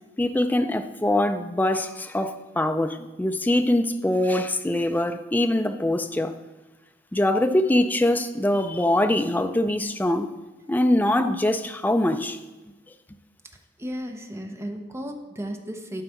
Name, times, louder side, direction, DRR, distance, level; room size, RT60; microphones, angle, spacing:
voice 1, 0.2-6.3 7.1-10.3 10.7-12.4, left 1 dB, 10° left, 8 dB, 0.4 m, -23 dB
voice 2, 13.8-16.0, equal, 15° right, 4 dB, 0.8 m, -34 dB
11.5 x 4.1 x 5.7 m, 1.2 s
head